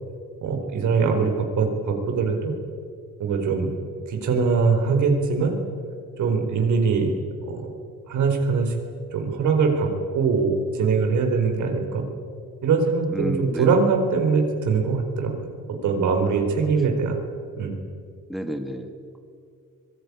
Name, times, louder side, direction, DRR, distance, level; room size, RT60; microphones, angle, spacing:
voice 1, 0.4-2.5 3.2-3.7 4.1-5.6 6.2-7.1 7.5-7.7 8.1-8.7 9.1-12.0 12.6-15.5 15.8-17.2 17.6-17.7, right 5 dB, 75° right, 3 dB, 4.4 m, -22 dB
voice 2, 13.1-13.7 16.7-16.8 18.3-19.2, equal, ahead, 5 dB, 2.3 m, -31 dB
24.5 x 18.0 x 9.7 m, 2.3 s
cardioid pair, 90°, 30 cm